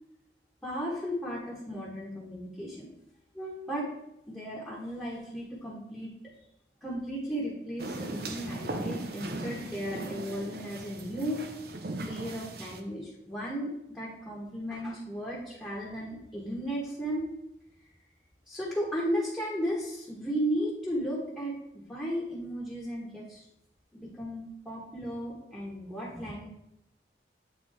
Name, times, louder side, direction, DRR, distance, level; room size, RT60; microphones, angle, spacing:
voice 1, 0.6-2.9 3.3-3.9 4.3-6.1 6.8-11.4 12.0-17.2 18.5-23.4 23.9-26.5, equal, 5° left, -5 dB, 1.3 m, -35 dB
sound 1, 7.8-12.8, right 2 dB, 55° right, 0.6 m, -38 dB
8.1 x 3.9 x 3.5 m, 0.81 s
head